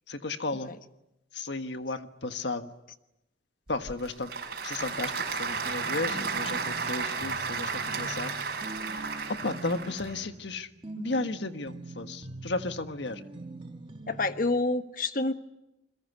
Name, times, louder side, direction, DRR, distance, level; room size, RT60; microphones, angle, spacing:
voice 1, 0.1-0.7 1.3-2.7 3.7-4.3 4.6-8.3 9.3-10.7 11.0-13.3, left 3 dB, 85° left, 8 dB, 1.5 m, -34 dB
Applause / Crowd, 3.7-10.1, right 5 dB, 55° right, 5.6 m, -33 dB
sound 1, 5.6-14.4, right 2 dB, 30° right, 1.4 m, -44 dB
voice 2, 14.1-15.3, left 2 dB, 50° left, 9 dB, 1.3 m, -28 dB
29.0 x 22.0 x 8.2 m, 0.91 s
head